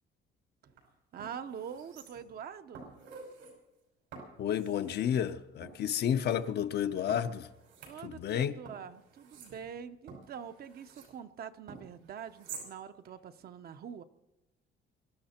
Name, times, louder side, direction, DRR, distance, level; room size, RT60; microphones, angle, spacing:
sound 1, 0.6-0.8 1.2-2.4 2.7-3.5 4.1-5.0 5.6-6.4 7.1-8.4 8.7-11.1 11.7-12.7 13.0-13.1, right 5 dB, 90° right, 5.5 m, -50 dB
voice 1, 1.1-2.9 7.9-14.0, right 8 dB, 50° right, 0.8 m, -44 dB
voice 2, 4.4-7.5 8.0-8.6, left 9 dB, 55° left, 0.7 m, -31 dB
23.5 x 12.5 x 4.4 m
cardioid pair, 135°, 21 cm